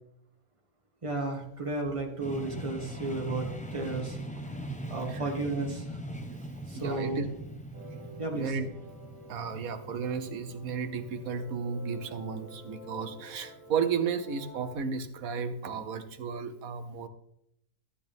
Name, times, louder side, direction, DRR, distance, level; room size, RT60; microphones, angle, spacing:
voice 1, 1.0-4.2 4.9-5.8 6.7-7.2 8.2-8.6, right 2 dB, 20° right, 1 dB, 1.8 m, -33 dB
sound 1, 2.2-14.0, right 1 dB, 10° left, 0.4 m, -42 dB
voice 2, 6.8-7.3 8.3-8.7 9.3-17.1, right 6 dB, 70° right, 9 dB, 1.3 m, -33 dB
sound 2, 7.7-14.8, right 1 dB, 45° left, 5.6 m, -50 dB
13.0 x 8.4 x 3.5 m, 0.76 s
omnidirectional pair, 1.6 m